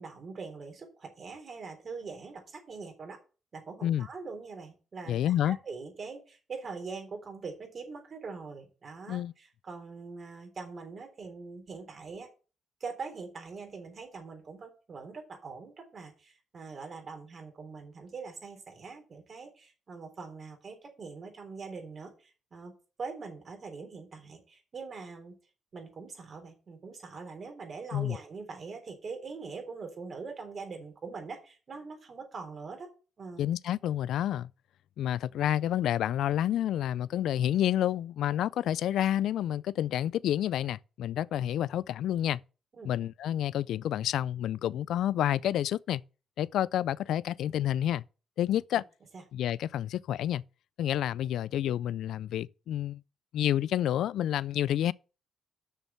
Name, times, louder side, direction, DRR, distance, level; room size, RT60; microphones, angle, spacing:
voice 1, 0.0-3.2 3.5-12.3 12.8-22.7 23.0-25.3 25.7-32.9 33.2-33.4 42.7-42.9 49.1-49.2, right 4 dB, 45° right, 3.6 m, -43 dB
voice 2, 5.1-5.6 9.1-9.3 27.9-28.2 33.4-34.5 35.0-42.4 42.8-46.0 46.4-48.0 48.4-48.8 49.3-50.4 50.8-53.0 53.3-54.9, left 11 dB, 75° left, 0.3 m, -29 dB
6.7 x 6.4 x 7.0 m
cardioid pair, 90°, 0 cm